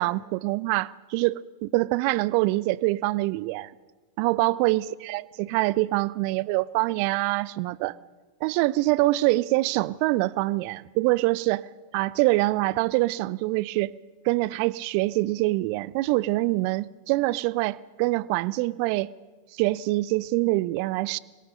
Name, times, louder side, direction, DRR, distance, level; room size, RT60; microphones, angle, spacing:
voice 1, 0.0-3.7 4.2-8.0 8.4-11.7 11.9-13.9 14.2-19.1 19.5-21.2, right 20 dB, 45° right, 0.6 m, -25 dB
24.0 x 21.5 x 6.6 m
figure-of-eight pair, 90°, 0 cm